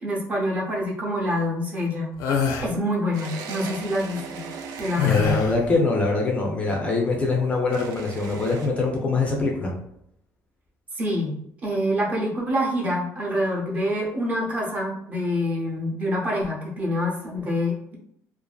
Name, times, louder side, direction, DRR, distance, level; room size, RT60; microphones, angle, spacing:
voice 1, 0.0-2.1 2.6-4.5 4.8-5.4 11.0-18.0, left 1 dB, 25° right, -2 dB, 0.6 m, -26 dB
sound 1, 2.2-2.7 5.0-5.7, left 6 dB, 90° left, 0.4 m, -24 dB
sound 2, 3.1-5.5 7.7-8.7, right 5 dB, 80° right, 0.4 m, -38 dB
voice 2, 5.0-9.7, left 3 dB, 20° left, 0 dB, 0.3 m, -23 dB
2.5 x 2.4 x 2.2 m, 0.73 s
cardioid pair, 170°, 6 cm